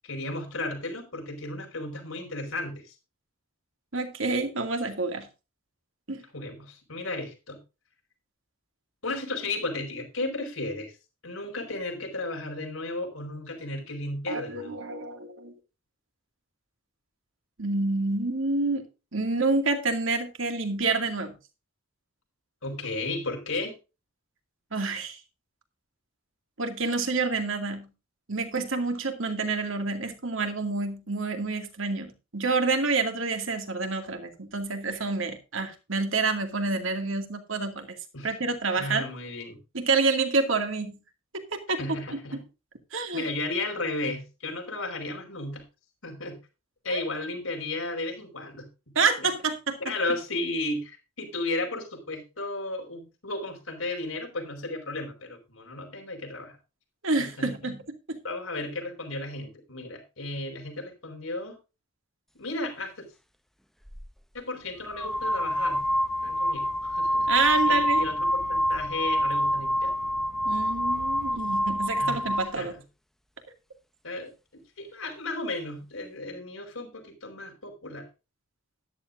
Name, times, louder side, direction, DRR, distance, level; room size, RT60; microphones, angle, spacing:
voice 1, 0.0-2.9 6.3-7.6 9.0-10.9 11.2-14.7 22.6-23.8 38.1-38.5 38.8-39.6 41.8-42.4 43.1-45.6 46.0-46.4 46.8-48.7 49.2-49.3 49.8-56.6 57.2-57.7 58.2-61.6 62.4-63.1 64.3-65.8 66.2-67.3 67.6-69.9 72.0-72.3 72.6-72.7 74.0-78.1, left 2 dB, 90° left, 5.0 m, -34 dB
voice 2, 3.9-5.3 6.1-6.2 14.3-15.5 17.6-18.8 19.1-21.3 24.7-25.2 26.6-27.9 28.3-38.0 38.2-39.1 39.7-41.0 41.3-41.8 42.3-42.4 42.9-43.3 46.9-47.0 49.0-49.8 57.0-57.8 58.1-58.2 67.3-68.0 70.4-72.7, right 3 dB, 75° right, 2.3 m, -28 dB
sound 1, 63.9-64.0 64.8-72.5, equal, ahead, 0.6 m, -26 dB
13.5 x 11.5 x 2.6 m
head